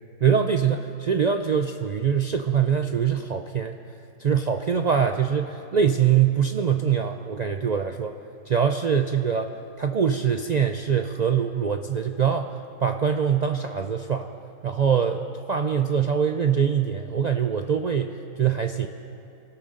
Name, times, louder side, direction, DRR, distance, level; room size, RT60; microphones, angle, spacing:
voice 1, 0.2-3.8 4.2-8.1 8.5-9.5 9.8-12.5 12.8-14.3 14.6-18.9, right 7 dB, 65° right, 5 dB, 0.4 m, -23 dB
27.5 x 12.5 x 3.8 m, 2.7 s
omnidirectional pair, 1.4 m